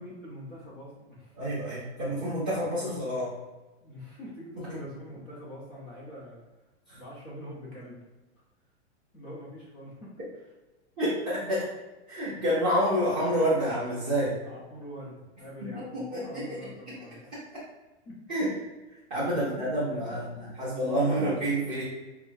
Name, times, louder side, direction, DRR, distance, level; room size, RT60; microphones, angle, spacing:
voice 1, 0.0-1.3 1.7-1.8 2.8-2.9 3.8-6.4 6.9-8.0 9.1-10.1 12.3-12.5 14.3-17.4 18.1-18.2 19.3-20.2 21.7-21.8, equal, 15° left, -5 dB, 0.7 m, -44 dB
voice 2, 1.3-3.3 6.9-7.0 11.0-11.7 12.1-14.4 15.6-16.6 16.9-17.0 17.3-17.4 18.3-18.5 19.1-21.8, equal, 5° right, -16 dB, 0.4 m, -28 dB
6.4 x 2.2 x 2.6 m, 1.1 s
supercardioid pair, 180°, 34 cm